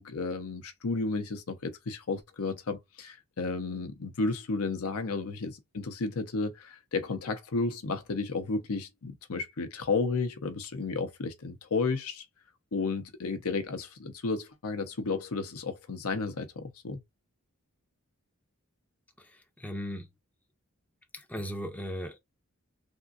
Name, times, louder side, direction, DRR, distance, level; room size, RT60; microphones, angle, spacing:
voice 1, 0.0-12.2 12.7-17.0, left 3 dB, 70° left, 0.7 m, -32 dB
voice 2, 19.2-20.1 21.1-22.2, equal, 5° left, 0.5 m, -37 dB
3.6 x 2.5 x 2.4 m
head